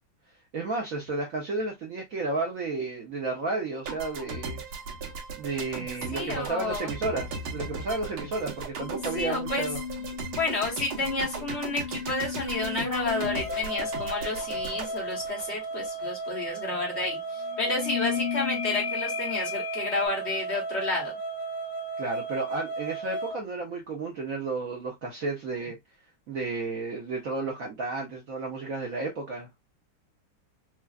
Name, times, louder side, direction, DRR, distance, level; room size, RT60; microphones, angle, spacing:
voice 1, 0.5-4.6 5.3-9.8 22.0-25.8 26.3-29.5, right 3 dB, 65° right, 0.8 m, -32 dB
sound 1, 3.9-16.1, right 4 dB, 80° right, 1.9 m, -38 dB
voice 2, 6.1-6.9 9.1-9.7 10.3-21.2, left 3 dB, 40° left, 1.1 m, -31 dB
sound 2, 8.8-13.6 17.5-20.1, left 8 dB, 90° left, 1.7 m, -35 dB
sound 3, 13.1-23.4, right 3 dB, 65° left, 1.5 m, -35 dB
4.8 x 2.3 x 2.3 m
omnidirectional pair, 2.3 m